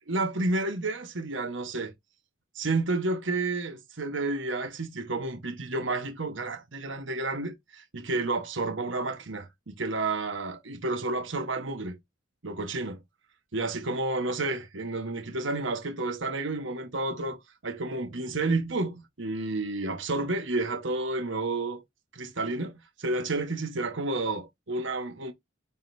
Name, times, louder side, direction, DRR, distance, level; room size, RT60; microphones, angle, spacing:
voice 1, 0.1-1.9 2.5-12.0 12.4-13.0 13.5-21.8 22.1-25.3, right 2 dB, 60° right, 1.2 m, -31 dB
9.4 x 4.0 x 2.6 m
head